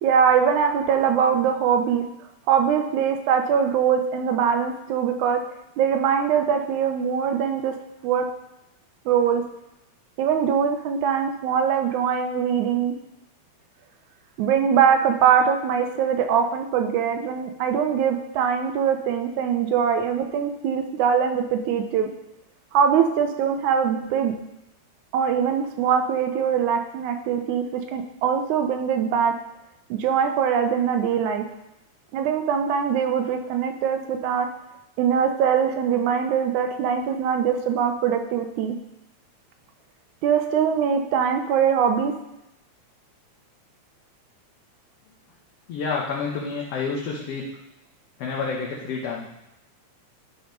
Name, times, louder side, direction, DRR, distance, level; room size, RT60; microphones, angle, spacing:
voice 1, 0.0-2.0 2.5-5.4 5.8-7.7 8.0-8.3 9.1-9.4 10.2-12.9 14.4-22.1 22.7-24.3 25.1-29.3 29.9-31.4 32.1-34.5 35.0-38.8 40.2-42.1, right 7 dB, 80° right, 5 dB, 2.2 m, -22 dB
voice 2, 45.7-47.5 48.2-49.3, left 5 dB, 65° left, -2 dB, 1.9 m, -29 dB
11.5 x 5.0 x 5.2 m, 0.87 s
omnidirectional pair, 3.5 m